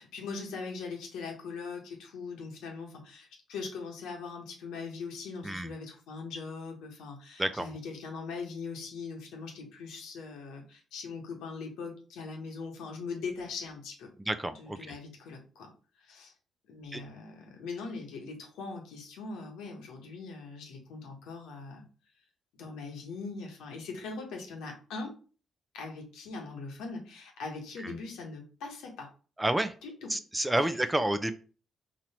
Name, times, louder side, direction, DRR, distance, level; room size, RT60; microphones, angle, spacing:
voice 1, 0.0-14.1 14.5-15.7 16.0-16.3 16.7-21.8 22.6-25.2 25.7-29.1 29.8-30.1 30.6-30.7, left 4 dB, 85° left, 2 dB, 1.2 m, -41 dB
voice 2, 14.2-14.9 16.9-17.0 27.8-28.0 29.4-29.7 30.1-31.3, right 1 dB, 15° right, 11 dB, 0.5 m, -30 dB
3.8 x 3.0 x 4.3 m, 0.37 s
supercardioid pair, 65°, 0 cm